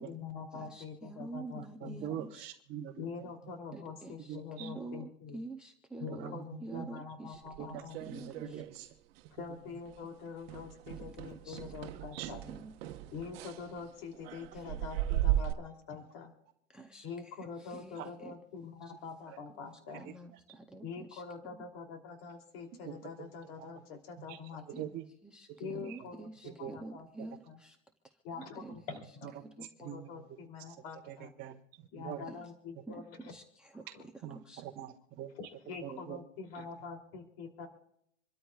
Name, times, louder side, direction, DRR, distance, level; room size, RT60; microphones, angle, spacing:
voice 1, 0.0-2.2 3.0-5.4 6.0-8.6 9.3-12.4 13.1-16.3 17.0-20.1 20.8-24.9 25.6-27.6 28.2-31.3 31.9-33.3 33.9-34.1 35.3-37.7, left 5 dB, 50° left, 4 dB, 3.0 m, -45 dB
voice 2, 0.7-2.5 3.7-4.1 4.6-6.4 6.6-7.0 7.3-7.4 8.1-8.6 11.0-11.1 11.5-11.6 12.5-12.7 16.7-17.1 17.7-18.0 18.2-18.3 20.0-20.8 21.1-21.2 21.5-21.6 24.7-24.8 25.2-25.5 25.9-27.8 28.6-28.7 32.3-32.4 32.9-33.0 33.3-33.4 33.7-33.8 34.3-34.6, right 2 dB, ahead, 5 dB, 0.5 m, -46 dB
voice 3, 1.8-3.0 4.3-4.7 6.1-6.3 6.7-6.9 7.6-7.8 8.1-8.9 12.1-12.3 18.0-18.1 22.9-23.0 24.3-24.4 24.8-25.0 25.9-26.0 26.6-26.7 29.8-30.1 31.1-31.6 32.0-32.3 34.2-35.3 35.8-36.2, right 11 dB, 25° right, -2 dB, 1.1 m, -43 dB
sound 1, 7.5-8.9 9.2-9.5 9.9-10.0 10.5-15.5, right 14 dB, 50° right, 1.1 m, -37 dB
27.0 x 13.0 x 2.4 m, 0.73 s
supercardioid pair, 160°, 37 cm